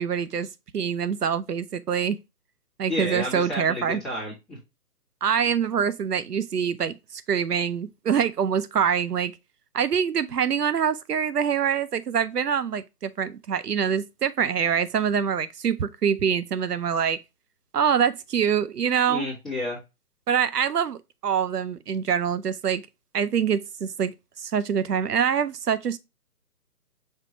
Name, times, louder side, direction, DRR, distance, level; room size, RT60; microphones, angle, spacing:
voice 1, 0.0-2.2 2.8-4.0 5.2-9.3 9.7-17.2 17.7-19.3 20.3-22.8 23.1-24.1 24.4-26.0, right 7 dB, 85° right, 0.7 m, -25 dB
voice 2, 2.9-4.6 19.1-19.8, left 1 dB, ahead, 1.0 m, -31 dB
5.5 x 3.6 x 2.7 m
figure-of-eight pair, 145°, 46 cm